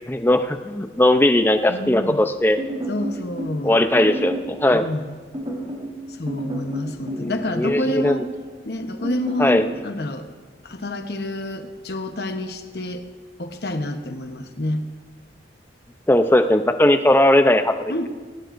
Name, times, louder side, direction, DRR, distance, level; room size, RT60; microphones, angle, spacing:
voice 1, 0.1-2.6 3.6-4.9 7.1-8.3 9.4-9.7 16.1-17.9, left 1 dB, 10° left, 8 dB, 0.5 m, -18 dB
voice 2, 1.7-2.2 2.9-3.8 4.7-5.2 6.1-8.3 8.7-10.3 10.6-13.1 13.4-14.8 17.9-18.1, left 1 dB, 65° left, 7 dB, 1.0 m, -28 dB
sound 1, 2.6-3.6 4.0-4.5 5.3-5.9 6.3-7.3 7.6-8.2 9.0-9.6, equal, 30° right, 3.9 m, -30 dB
18.5 x 18.5 x 2.6 m, 1.4 s
head